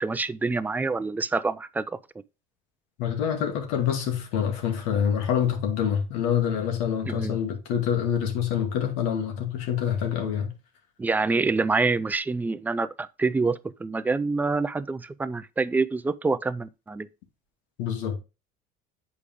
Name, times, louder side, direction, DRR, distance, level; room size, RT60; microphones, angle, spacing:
voice 1, 0.0-2.0 7.1-7.4 11.0-17.1, right 3 dB, 10° right, 0.3 m, -26 dB
voice 2, 3.0-10.5 17.8-18.2, left 8 dB, 85° left, 2.3 m, -26 dB
8.4 x 4.9 x 3.6 m
cardioid pair, 145°, 20 cm